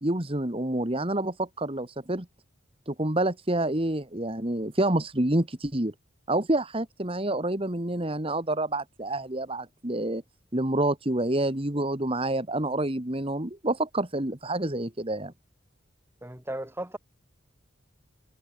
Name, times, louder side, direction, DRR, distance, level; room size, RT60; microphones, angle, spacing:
voice 1, 0.0-2.3 2.9-5.9 6.3-10.2 10.5-15.3, right 1 dB, 30° right, 2.0 m, -28 dB
voice 2, 16.2-17.0, right 1 dB, 10° right, 1.8 m, -35 dB
head